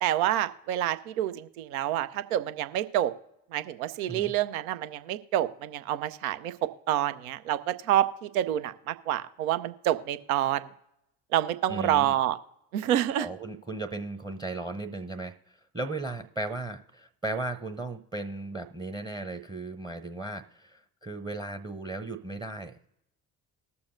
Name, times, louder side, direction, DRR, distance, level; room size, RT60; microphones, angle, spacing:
voice 1, 0.0-3.1 3.5-6.5 6.9-10.7 11.3-12.4 12.7-13.3, right 12 dB, 75° right, 12 dB, 0.6 m, -28 dB
voice 2, 11.7-12.1 13.1-23.0, right 2 dB, 10° right, 12 dB, 0.7 m, -36 dB
20.5 x 7.0 x 2.6 m, 0.84 s
figure-of-eight pair, 50°, 43 cm